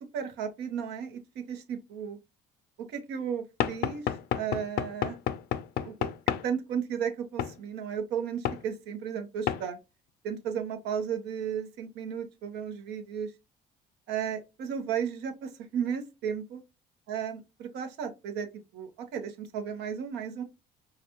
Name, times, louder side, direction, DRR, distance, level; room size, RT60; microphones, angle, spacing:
voice 1, 0.1-2.2 2.9-5.2 5.8-6.1 6.4-9.8 10.2-13.3 14.1-16.6 17.1-18.5 18.7-20.4, right 7 dB, 85° right, 0.9 m, -34 dB
Knock / Wood, 3.6-6.5 7.4-7.6 8.5-8.6 9.5-9.7, left 10 dB, 70° left, 0.4 m, -30 dB
4.9 x 2.3 x 2.8 m
cardioid pair, 110°, 17 cm